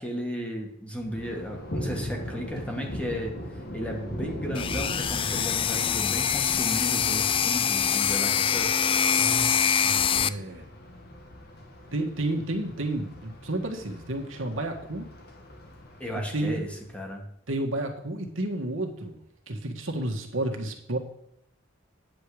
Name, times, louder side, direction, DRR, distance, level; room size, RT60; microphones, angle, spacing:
voice 1, 0.0-3.3 3.7-8.8 16.0-16.7 16.9-17.2, equal, 5° left, 0 dB, 1.8 m, -34 dB
Thunder, 1.0-16.9, left 1 dB, 55° left, 1.9 m, -39 dB
sound 1, 4.5-10.3, left 8 dB, 25° left, 0.3 m, -24 dB
voice 2, 9.2-10.7 11.9-15.1 16.1-16.6 17.5-19.2 19.5-21.0, right 1 dB, 75° right, 2 dB, 1.7 m, -31 dB
9.5 x 7.9 x 5.0 m, 0.74 s
head